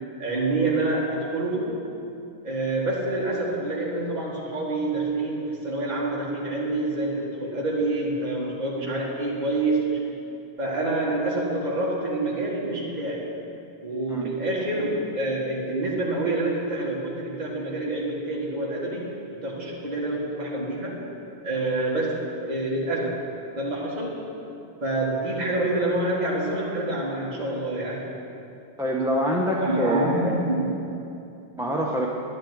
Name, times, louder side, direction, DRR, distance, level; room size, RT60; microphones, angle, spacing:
voice 1, 0.2-1.8 2.4-10.1 10.6-13.3 13.8-19.2 19.4-21.0 21.4-23.2 23.5-24.2 24.8-28.2 29.5-30.7, right 2 dB, 45° right, -4 dB, 1.8 m, -27 dB
voice 2, 28.8-30.4 31.6-32.1, equal, 5° right, -2 dB, 0.9 m, -25 dB
10.5 x 8.5 x 9.4 m, 2.7 s
omnidirectional pair, 1.0 m